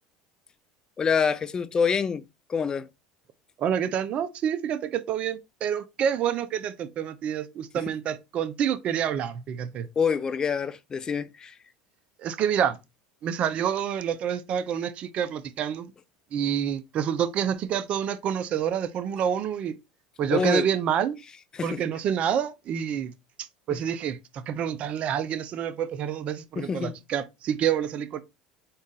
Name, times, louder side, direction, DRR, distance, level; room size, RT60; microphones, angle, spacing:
voice 1, 1.0-2.2 2.5-2.9 10.0-11.5 20.3-20.6 21.5-21.8 26.6-26.9, left 6 dB, 25° left, 0.4 m, -26 dB
voice 2, 3.6-9.9 12.2-12.8 13.2-15.9 16.3-19.8 20.2-21.2 21.6-28.2, right 9 dB, 45° right, 0.5 m, -28 dB
3.9 x 2.4 x 3.8 m
supercardioid pair, 105°, 3 cm